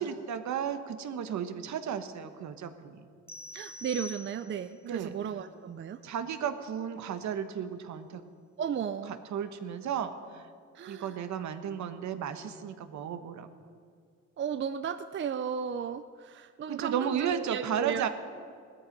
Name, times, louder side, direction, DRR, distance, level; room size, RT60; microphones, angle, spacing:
voice 1, 0.0-3.0 4.8-5.1 6.0-8.2 9.3-10.5 10.9-13.5 16.7-18.1, right 8 dB, 70° right, 9 dB, 1.2 m, -34 dB
sound 1, 3.3-4.8, left 1 dB, 10° left, 0.5 m, -45 dB
voice 2, 3.5-6.0 8.6-9.2 10.7-11.2 14.4-18.1, right 7 dB, 40° right, 11 dB, 0.5 m, -35 dB
17.0 x 13.0 x 5.3 m, 2.1 s
cardioid pair, 90°, 30 cm